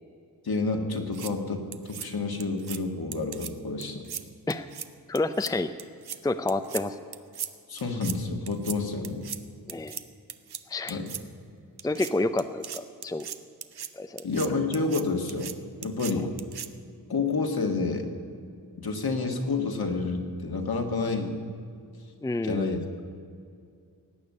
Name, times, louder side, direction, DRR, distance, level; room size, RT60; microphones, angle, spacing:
voice 1, 0.4-4.1 7.7-9.2 10.9-11.1 14.2-15.5 15.8-16.3 17.1-18.1 18.8-21.4 22.4-22.8, left 3 dB, 65° left, 3 dB, 1.9 m, -29 dB
sound 1, 0.9-1.3 1.7-2.1 2.4-2.8 3.1-3.5 3.8-4.2 4.5-4.9 5.1-5.5 5.8-6.2 6.5-6.8 7.1-7.5 7.8-8.2 8.5-8.8 9.0-9.4 9.7-10.0 10.3-10.6 10.9-11.2 11.8-12.1 12.4-13.9 14.2-14.5 14.7-15.0 15.3-15.5 15.8-16.1 16.4-16.7, right 8 dB, 70° right, 0.8 m, -37 dB
voice 2, 5.1-5.7 6.2-7.0 9.7-10.0 10.7-11.0 11.8-13.3 13.9-14.3 22.2-22.8, left 2 dB, 10° left, 10 dB, 0.5 m, -29 dB
18.0 x 7.2 x 9.6 m, 2.4 s
wide cardioid pair, 80°, 39 cm